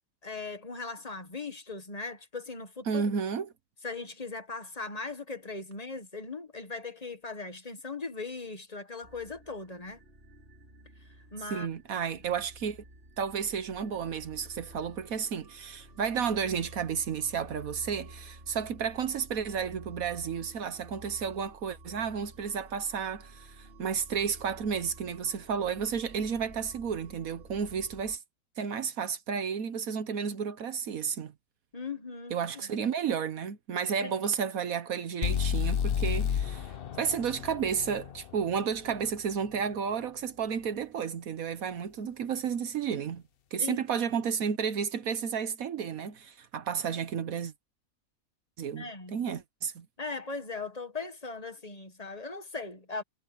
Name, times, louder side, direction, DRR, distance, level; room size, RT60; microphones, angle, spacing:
voice 1, 0.2-3.0 3.8-10.0 11.3-11.7 31.7-32.9 34.0-34.3 43.6-44.0 48.8-49.2 50.0-53.0, left 4 dB, 25° left, 1.5 m, -39 dB
voice 2, 2.9-3.5 11.5-12.8 13.2-28.2 28.6-31.3 32.3-43.2 43.5-47.5 48.6-49.9, right 7 dB, 70° right, 1.4 m, -32 dB
sound 1, 9.0-28.2, right 1 dB, 40° right, 6.1 m, -51 dB
sound 2, 35.2-39.2, left 8 dB, 50° left, 0.7 m, -31 dB
omnidirectional pair, 1.5 m